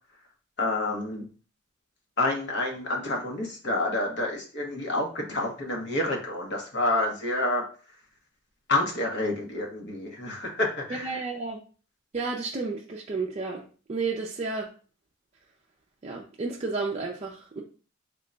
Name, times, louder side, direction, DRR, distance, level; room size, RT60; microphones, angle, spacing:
voice 1, 0.6-1.2 2.2-7.6 8.7-11.0, left 2 dB, 55° left, 1 dB, 1.0 m, -28 dB
voice 2, 10.9-11.6 12.1-14.7 16.0-17.6, right 4 dB, 35° right, -2 dB, 0.4 m, -32 dB
3.6 x 2.2 x 3.7 m, 0.38 s
head